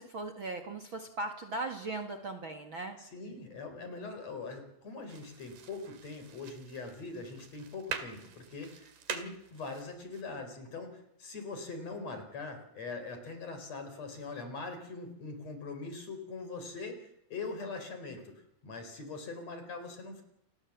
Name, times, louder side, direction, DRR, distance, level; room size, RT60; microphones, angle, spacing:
voice 1, 0.0-3.0, right 2 dB, 40° right, 5 dB, 2.2 m, -38 dB
voice 2, 3.0-20.2, left 3 dB, 50° left, 7 dB, 5.2 m, -42 dB
sound 1, 5.1-10.2, right 8 dB, 75° right, 3.9 m, -45 dB
29.0 x 19.5 x 7.3 m, 0.81 s
omnidirectional pair, 4.0 m